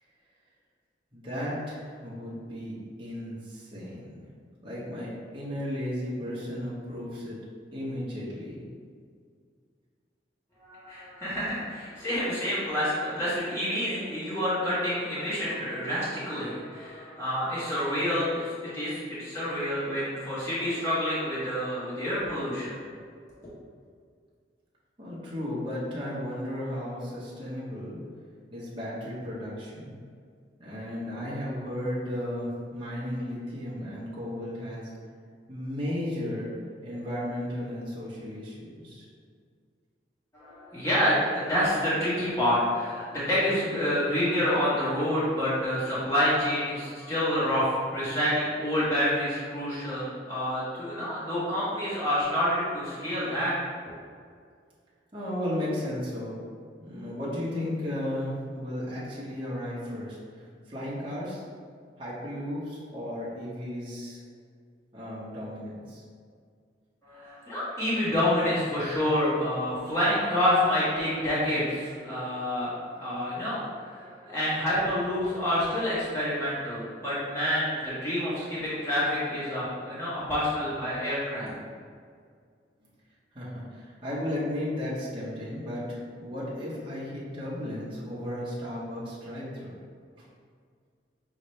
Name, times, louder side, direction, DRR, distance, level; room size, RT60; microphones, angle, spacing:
voice 1, 1.1-4.2 4.6-7.4 7.7-8.6 25.0-28.0 28.5-30.0 30.6-34.9 35.5-36.5 36.8-39.0 55.1-56.3 56.8-60.2 60.7-61.4 62.0-64.2 64.9-66.0 83.3-89.7, left 1 dB, 30° right, -8 dB, 0.9 m, -34 dB
voice 2, 10.6-22.8 40.3-53.6 67.0-81.5, left 1 dB, 15° left, -11 dB, 1.3 m, -28 dB
5.7 x 2.8 x 3.2 m, 2.1 s
head